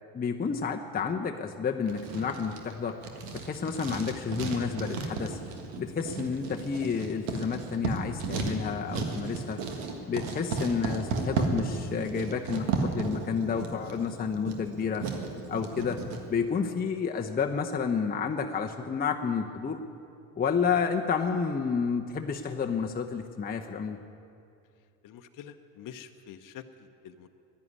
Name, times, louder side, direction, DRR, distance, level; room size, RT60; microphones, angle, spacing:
voice 1, 0.1-3.0 3.3-5.4 5.8-9.6 10.1-15.1 15.5-16.0 16.3-19.8 20.4-24.0, left 6 dB, 20° left, 3 dB, 0.8 m, -30 dB
Writing, 1.9-16.2, right 4 dB, 80° right, 1.8 m, -34 dB
voice 2, 25.0-26.6 27.0-27.3, left 9 dB, 50° left, 7 dB, 0.9 m, -46 dB
11.0 x 10.5 x 9.6 m, 2.5 s
supercardioid pair, 80°, 41 cm